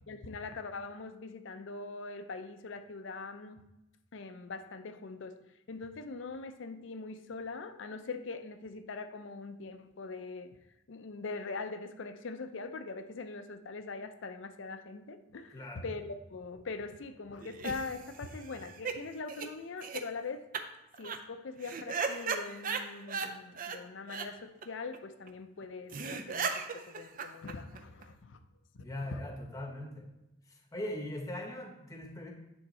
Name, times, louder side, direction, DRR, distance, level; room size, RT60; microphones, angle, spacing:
voice 1, 0.1-3.6 4.1-5.4 5.7-10.6 10.9-20.4 21.0-28.4 28.7-29.2, left 4 dB, 65° left, 0.5 m, -42 dB
voice 2, 15.5-15.9 28.8-30.0 30.5-32.3, left 1 dB, 15° left, 0.9 m, -40 dB
sound 1, 17.4-19.0 19.3-19.5 19.8-20.0 20.5-20.6 20.9-21.2 21.6-23.3 23.6-23.8 24.1-24.3 24.6-24.7 24.9-25.0 25.3-25.4 25.6-25.7 25.9-28.0, right 5 dB, 45° right, 0.5 m, -36 dB
9.5 x 3.6 x 4.2 m
head